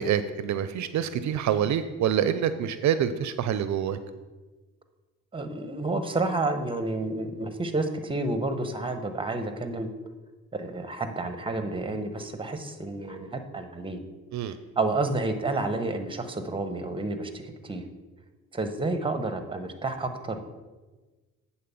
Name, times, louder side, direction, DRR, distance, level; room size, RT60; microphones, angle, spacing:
voice 1, 0.0-4.0 14.3-14.6, right 9 dB, 70° right, 12 dB, 0.5 m, -26 dB
voice 2, 5.3-9.9 10.5-14.0 14.8-17.9 18.5-20.4, right 2 dB, 15° right, 7 dB, 1.0 m, -30 dB
8.6 x 4.3 x 7.0 m, 1.3 s
cardioid pair, 85°, 30 cm